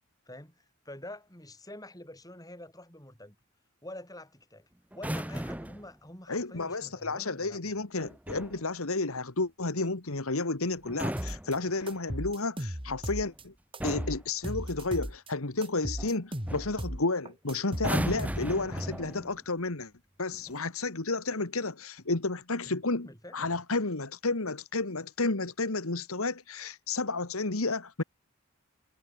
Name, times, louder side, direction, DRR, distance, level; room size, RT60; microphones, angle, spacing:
voice 1, 0.3-3.4 3.8-4.6 4.9-7.7 22.6-23.6, left 1 dB, 15° left, 5.5 m, -47 dB
sound 1, 4.9-5.9 8.0-8.6 10.8-12.1 13.2-13.4 13.8-14.3 16.0-16.2 16.5-16.8 17.7-19.4 20.3-20.6, right 1 dB, 5° right, 0.8 m, -36 dB
voice 2, 6.3-13.5 13.8-19.9 20.2-23.1 23.3-28.0, left 3 dB, 75° left, 1.8 m, -31 dB
sound 2, 11.2-11.6 11.9-13.4 13.7-15.3 15.6-18.7, equal, 25° right, 5.7 m, -36 dB
head